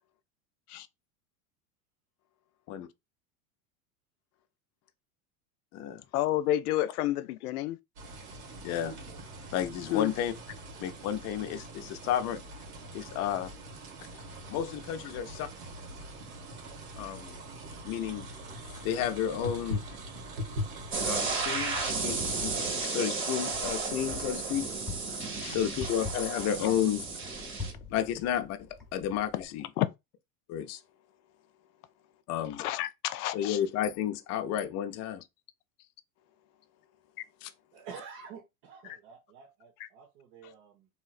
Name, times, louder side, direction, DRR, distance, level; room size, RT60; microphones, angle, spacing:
voice 1, 6.1-7.8 9.9-10.1 21.7-21.9 22.8-22.9 25.4-25.6 26.6-26.7 29.8-29.9 32.6-33.6 38.9-39.0, left 14 dB, 90° left, 0.5 m, -30 dB
sound 1, 8.0-22.8, equal, 90° right, 1.7 m, -42 dB
voice 2, 8.6-8.9 9.5-10.3 10.8-12.4 12.9-13.5 14.5-15.5 17.0-17.4 17.8-18.3 18.8-19.8 21.0-24.7 25.5-27.0 27.9-29.7 30.5-30.8 32.3-32.6 33.3-35.2 37.4-37.5, left 10 dB, 35° left, 0.5 m, -32 dB
Wind, 20.5-29.5, left 3 dB, ahead, 0.9 m, -46 dB
sound 2, 20.9-27.7, right 4 dB, 25° right, 1.4 m, -33 dB
voice 3, 37.7-40.9, right 6 dB, 60° right, 1.1 m, -48 dB
3.1 x 2.8 x 2.4 m
supercardioid pair, 115°, 44 cm